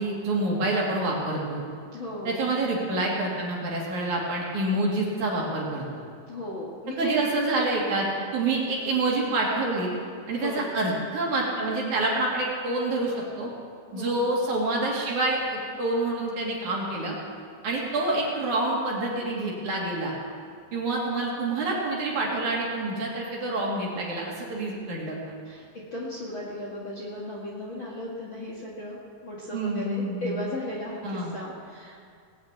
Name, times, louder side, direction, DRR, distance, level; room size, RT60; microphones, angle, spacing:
voice 1, 0.0-1.7 2.2-5.8 7.0-9.9 10.3-13.5 13.9-17.2 17.6-20.1 20.7-25.2 29.5-30.4 31.0-31.3, right 2 dB, 55° right, -3 dB, 3.5 m, -27 dB
voice 2, 1.9-2.4 6.3-7.2 10.3-10.7 13.9-14.2 25.4-25.6 25.9-32.0, left 1 dB, 45° left, -4 dB, 1.7 m, -36 dB
19.0 x 6.6 x 8.7 m, 2.2 s
omnidirectional pair, 4.4 m